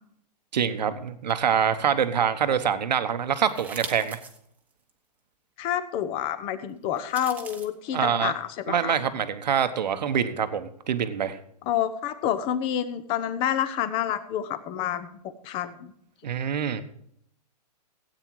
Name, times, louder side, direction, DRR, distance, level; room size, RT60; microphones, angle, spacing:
voice 1, 0.5-4.2 7.9-8.3 8.7-11.4 16.2-16.8, right 8 dB, 90° right, 9 dB, 1.2 m, -25 dB
sound 1, 3.5-4.4 4.9-5.0 7.0-7.7, right 4 dB, 5° right, 1.0 m, -39 dB
voice 2, 5.6-8.9 11.7-15.1 15.4-15.9, left 10 dB, 25° left, 12 dB, 0.9 m, -28 dB
16.0 x 8.9 x 4.7 m, 0.70 s
hypercardioid pair, 155°, 21 cm